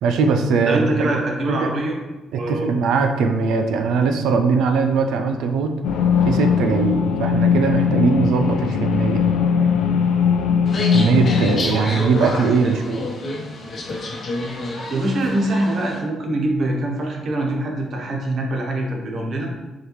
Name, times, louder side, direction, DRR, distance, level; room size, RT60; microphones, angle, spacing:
voice 1, 0.0-1.1 1.6-1.7 2.3-5.8 6.2-9.2 10.9-13.0, right 5 dB, 85° right, 6 dB, 0.4 m, -20 dB
voice 2, 0.7-1.9 2.4-2.7 12.6-12.7 14.9-19.5, right 1 dB, 55° right, 0 dB, 1.0 m, -23 dB
sound 1, 5.8-11.6, left 6 dB, 85° left, 0.4 m, -19 dB
sound 2, 10.7-16.0, left 2 dB, 50° left, 0.9 m, -29 dB
6.3 x 2.4 x 3.0 m, 1.2 s
cardioid pair, 90°, 0 cm